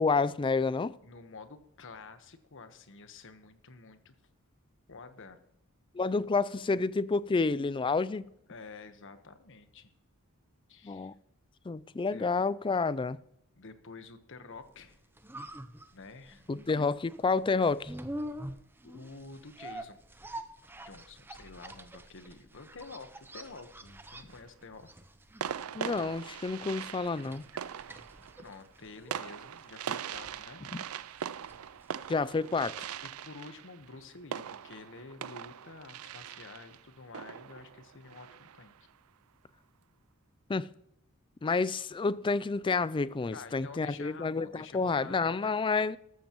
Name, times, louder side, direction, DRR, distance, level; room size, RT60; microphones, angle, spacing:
voice 1, 0.0-1.0 5.9-8.2 10.8-11.1 11.7-13.2 16.5-17.9 25.7-27.4 30.7-30.8 32.1-32.9 40.5-40.7 41.4-46.0, left 4 dB, 20° left, 0.4 m, -29 dB
voice 2, 1.0-4.1 4.9-5.4 8.5-9.9 10.7-11.1 12.1-12.2 13.5-15.0 15.9-16.5 16.7-17.0 18.8-20.0 20.8-24.9 28.4-30.6 33.0-38.9 43.3-45.5, left 4 dB, 60° left, 1.2 m, -49 dB
sound 1, 14.8-32.8 33.1-33.2, right 1 dB, 10° right, 0.7 m, -46 dB
sound 2, 23.9-24.5 25.4-38.8, right 8 dB, 75° right, 0.5 m, -41 dB
14.5 x 12.5 x 3.1 m
head